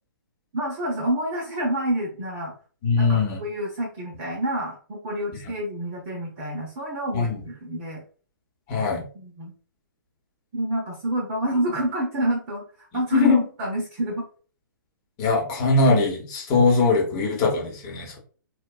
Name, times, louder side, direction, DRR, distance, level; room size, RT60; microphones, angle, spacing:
voice 1, 0.5-2.5 3.0-8.0 9.1-9.5 10.5-14.3, right 1 dB, 35° right, -1 dB, 0.7 m, -28 dB
voice 2, 2.8-3.4 7.1-7.4 8.7-9.0 13.1-13.4 15.2-18.2, left 3 dB, 30° left, -1 dB, 0.9 m, -21 dB
2.6 x 2.2 x 2.3 m, 0.41 s
figure-of-eight pair, 130°, 12 cm